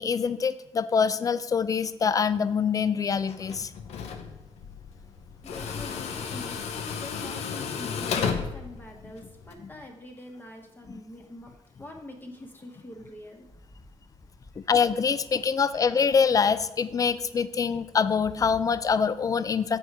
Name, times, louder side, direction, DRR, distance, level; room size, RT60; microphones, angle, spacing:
voice 1, 0.0-3.7 14.6-19.8, left 6 dB, 35° left, 14 dB, 0.4 m, -25 dB
Tools, 3.3-9.5, left 6 dB, 90° left, 0.7 m, -34 dB
voice 2, 5.4-13.5 14.5-14.7, left 1 dB, 20° left, 2 dB, 1.1 m, -45 dB
7.8 x 4.4 x 4.7 m, 0.91 s
cardioid pair, 95°, 11 cm